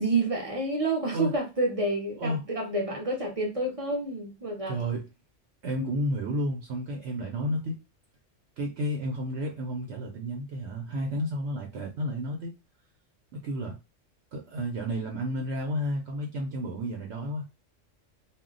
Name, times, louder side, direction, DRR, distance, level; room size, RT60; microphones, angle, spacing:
voice 1, 0.0-4.8 5.7-5.9, right 2 dB, 35° right, 0.6 m, -29 dB
voice 2, 4.7-5.1 5.6-7.8 8.6-12.5 13.3-13.8 14.3-17.4, equal, 70° right, 0.9 m, -31 dB
2.3 x 2.1 x 3.7 m
omnidirectional pair, 1.3 m